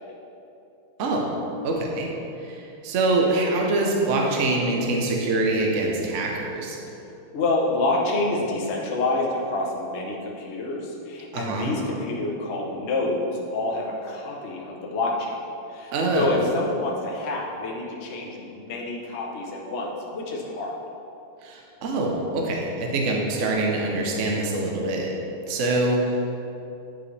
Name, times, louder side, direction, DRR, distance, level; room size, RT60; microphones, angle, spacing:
voice 1, 1.0-1.3 1.6-2.1 2.4-6.8 11.3-11.7 15.9-16.3 21.4-25.1 25.5-26.2, right 2 dB, 70° right, -1 dB, 0.7 m, -24 dB
voice 2, 7.3-15.4 15.7-20.7, left 2 dB, 60° left, -2 dB, 0.7 m, -27 dB
8.8 x 5.2 x 3.3 m, 2.8 s
omnidirectional pair, 2.4 m